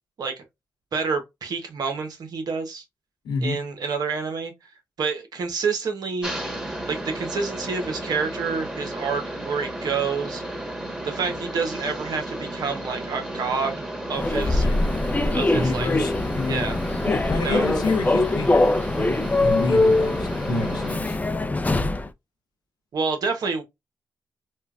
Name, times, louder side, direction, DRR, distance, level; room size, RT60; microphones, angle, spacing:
voice 1, 0.9-2.8 3.4-4.5 5.0-6.3 6.9-10.4 11.0-13.8 14.1-14.6 15.3-15.9 16.5-16.8 17.3-17.7 22.9-23.6, right 5 dB, 70° right, 1.2 m, -28 dB
voice 2, 3.2-3.6 14.6-14.8 15.5-16.7 17.1-18.7 19.0-21.2, left 3 dB, 80° left, 0.7 m, -28 dB
sound 1, 6.2-21.0, right 1 dB, 10° right, 1.5 m, -33 dB
Human voice / Subway metro underground, 14.1-22.1, left 2 dB, 20° left, 0.6 m, -23 dB
4.3 x 2.4 x 2.3 m
supercardioid pair, 45°, 7 cm